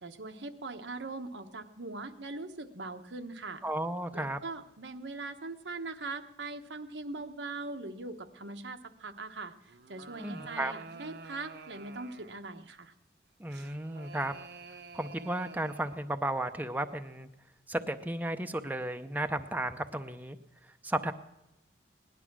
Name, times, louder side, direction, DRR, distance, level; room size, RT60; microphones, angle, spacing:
voice 1, 0.0-3.6 4.1-9.5 9.9-12.9, right 3 dB, 85° right, 6 dB, 1.1 m, -41 dB
voice 2, 3.6-4.4 10.2-10.7 13.4-14.3 14.9-17.3 17.7-20.4 20.8-21.1, right 1 dB, 10° right, 7 dB, 0.6 m, -34 dB
sound 1, 9.7-12.5 13.5-16.1, right 4 dB, 65° right, 0.9 m, -49 dB
18.0 x 11.0 x 6.1 m, 0.93 s
head